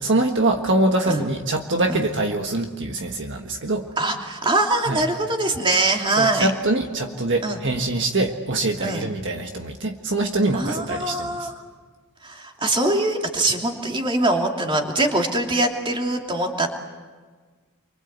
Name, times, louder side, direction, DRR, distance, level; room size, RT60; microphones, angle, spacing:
voice 1, 0.0-3.9 4.9-5.0 6.2-11.5, right 2 dB, 55° right, 3 dB, 1.6 m, -24 dB
voice 2, 4.0-6.5 7.4-7.6 8.8-9.1 10.5-11.5 12.2-16.7, right 2 dB, 25° right, 2 dB, 2.8 m, -23 dB
29.5 x 24.0 x 8.2 m, 1.5 s
head